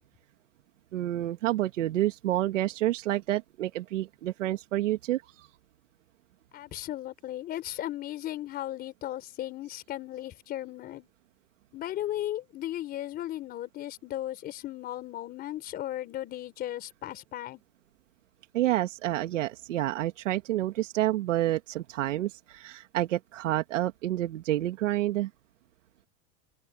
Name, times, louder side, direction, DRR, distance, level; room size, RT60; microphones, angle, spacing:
voice 1, 0.9-5.5 18.5-25.3, right 14 dB, 85° right, 2.0 m, -29 dB
voice 2, 6.5-11.1 11.7-17.6, left 13 dB, 25° left, 4.2 m, -36 dB
open air
supercardioid pair, 165°, 37 cm